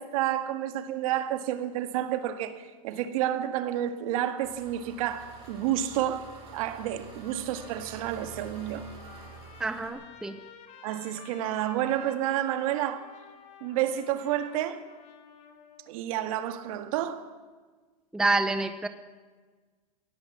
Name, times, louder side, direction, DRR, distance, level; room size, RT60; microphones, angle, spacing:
voice 1, 0.0-8.9 10.8-13.1 13.6-14.8 15.9-17.3, right 12 dB, 55° right, 1.9 m, -30 dB
Engine, 4.4-9.9, right 4 dB, 25° right, 7.5 m, -48 dB
Trumpet, 7.3-15.9, left 7 dB, 30° left, 2.7 m, -52 dB
voice 2, 9.6-10.4 18.1-18.9, right 2 dB, 5° right, 0.7 m, -27 dB
22.0 x 17.5 x 7.4 m
supercardioid pair, 150°, 21 cm